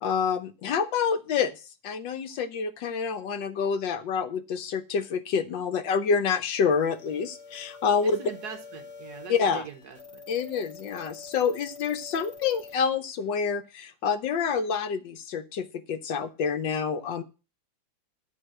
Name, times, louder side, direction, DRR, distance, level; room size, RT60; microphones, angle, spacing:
voice 1, 0.0-8.2 9.3-9.7 10.3-17.2, left 6 dB, 70° left, 1.5 m, -27 dB
sound 1, 6.6-12.7, left 4 dB, 35° left, 2.1 m, -47 dB
voice 2, 8.0-10.2, right 6 dB, 60° right, 1.5 m, -42 dB
11.0 x 3.9 x 7.6 m
omnidirectional pair, 2.1 m